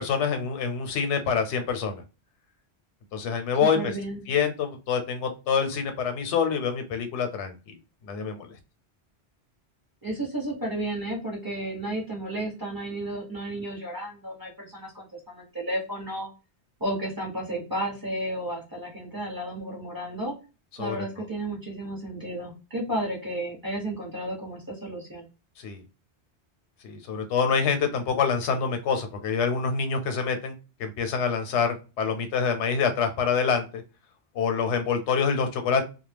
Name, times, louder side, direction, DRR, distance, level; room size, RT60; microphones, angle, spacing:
voice 1, 0.0-2.0 3.1-3.9 4.3-7.8 8.0-8.5 20.8-21.1 25.6-25.8 26.8-30.5 30.8-33.8 34.3-35.8, left 6 dB, 90° left, 7 dB, 0.9 m, -26 dB
voice 2, 3.6-4.2 10.0-16.3 16.8-20.4 20.8-25.3, right 1 dB, 20° right, -4 dB, 0.9 m, -32 dB
2.2 x 2.0 x 3.3 m, 0.31 s
omnidirectional pair, 1.1 m